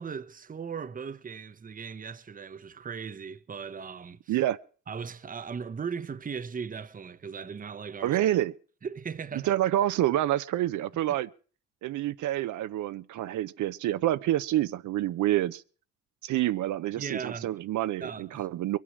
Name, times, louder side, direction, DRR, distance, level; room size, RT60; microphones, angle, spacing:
voice 1, 0.0-4.4 4.9-8.2 8.8-9.5 17.0-17.5 18.0-18.5, right 6 dB, 30° right, 0.8 m, -38 dB
voice 2, 8.0-8.5 9.4-11.3 11.8-15.6 16.2-18.8, right 13 dB, 75° right, 0.7 m, -27 dB
21.5 x 9.2 x 6.2 m
cardioid pair, 90°, 30 cm